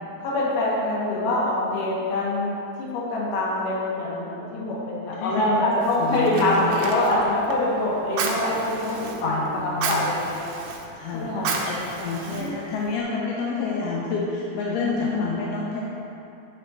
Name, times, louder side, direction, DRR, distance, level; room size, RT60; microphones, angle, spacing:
voice 1, 0.2-2.5 2.8-10.5 11.1-11.6 12.3-12.7 14.8-15.3, left 1 dB, 65° left, -6 dB, 2.8 m, -25 dB
voice 2, 5.2-6.6 9.2-10.1 10.9-15.8, left 4 dB, 85° left, -4 dB, 2.7 m, -29 dB
Fire, 5.8-13.0, right 4 dB, 85° right, 2.6 m, -33 dB
10.0 x 4.3 x 4.4 m, 2.9 s
omnidirectional pair, 4.6 m